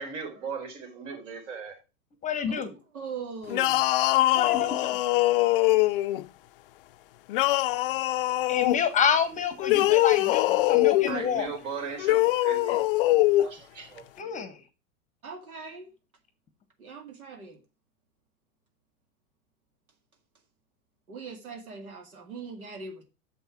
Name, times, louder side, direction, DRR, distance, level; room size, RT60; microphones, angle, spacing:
voice 1, 0.0-1.8 11.1-12.8 13.4-14.1, right 5 dB, 55° right, 4.0 m, -37 dB
voice 2, 2.2-2.7 4.3-4.9 8.5-11.5 14.2-14.6, left 7 dB, 20° left, 0.9 m, -28 dB
voice 3, 2.9-3.9 15.2-15.9 16.8-17.6 21.1-23.1, right 4 dB, 85° right, 2.0 m, -40 dB
sound 1, 3.5-6.2 7.3-8.8 9.6-11.1 12.0-13.5, left 17 dB, 45° left, 0.4 m, -23 dB
7.0 x 5.6 x 5.9 m
hypercardioid pair, 115°, 42 cm